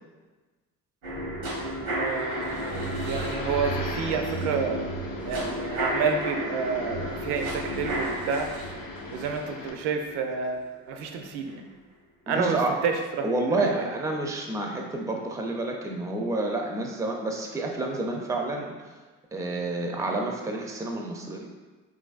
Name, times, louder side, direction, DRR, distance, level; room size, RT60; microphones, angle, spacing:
sound 1, 1.0-11.1 11.5-11.6, right 1 dB, 90° right, 0.9 m, -33 dB
voice 1, 1.8-8.5 9.1-11.7 12.3-12.9 13.6-13.7, right 5 dB, 75° right, 4 dB, 0.5 m, -30 dB
sound 2, 2.1-9.7, left 3 dB, 55° left, 0.7 m, -40 dB
voice 2, 12.3-12.7 13.2-18.7 19.3-21.5, right 2 dB, 10° right, 1 dB, 0.4 m, -29 dB
3.0 x 2.5 x 2.4 m, 1.3 s
hypercardioid pair, 55°, 41 cm